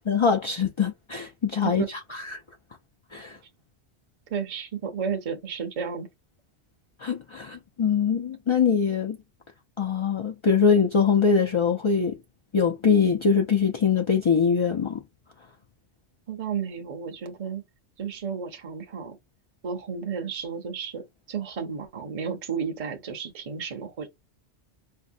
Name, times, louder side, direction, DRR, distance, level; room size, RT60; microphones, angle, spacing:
voice 1, 0.1-2.4 3.1-3.4 7.0-9.2 9.8-12.2 12.5-15.0, left 6 dB, 45° left, 0.4 m, -23 dB
voice 2, 4.3-6.1 16.3-17.6 18.0-19.2 19.6-24.1, right 6 dB, 40° right, 0.7 m, -32 dB
4.5 x 2.1 x 2.6 m
omnidirectional pair, 1.2 m